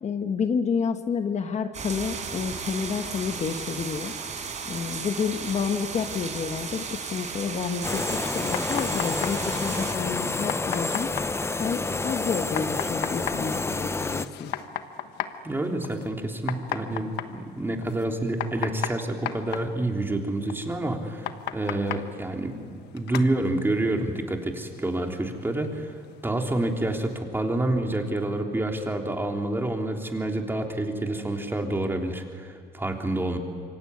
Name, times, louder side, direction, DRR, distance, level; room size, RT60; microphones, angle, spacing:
voice 1, 0.0-4.1 4.7-11.1 11.6-14.5, left 6 dB, 40° left, 7 dB, 1.4 m, -29 dB
sound 1, 1.7-9.9, right 5 dB, 45° right, 5.0 m, -35 dB
sound 2, 7.8-14.2, left 3 dB, 15° left, 0.8 m, -29 dB
sound 3, 8.1-27.2, left 11 dB, 80° left, 1.4 m, -38 dB
voice 2, 15.4-25.9 26.2-33.4, right 1 dB, 15° right, 2 dB, 3.4 m, -28 dB
26.5 x 23.0 x 9.6 m, 2.1 s
cardioid pair, 110°, 17 cm